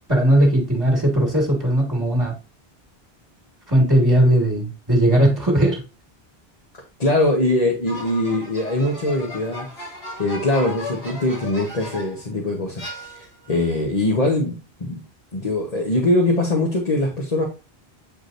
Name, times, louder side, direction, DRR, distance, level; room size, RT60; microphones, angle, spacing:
voice 1, 0.1-2.3 3.7-5.8, right 1 dB, 25° right, -2 dB, 2.0 m, -18 dB
voice 2, 7.0-9.9 10.2-12.8 13.1-15.0 15.3-17.4, left 1 dB, 40° left, -1 dB, 1.3 m, -22 dB
sound 1, 7.9-12.3 12.8-13.5, left 1 dB, 85° left, 3.2 m, -36 dB
8.5 x 4.8 x 2.6 m, 0.29 s
omnidirectional pair, 1.0 m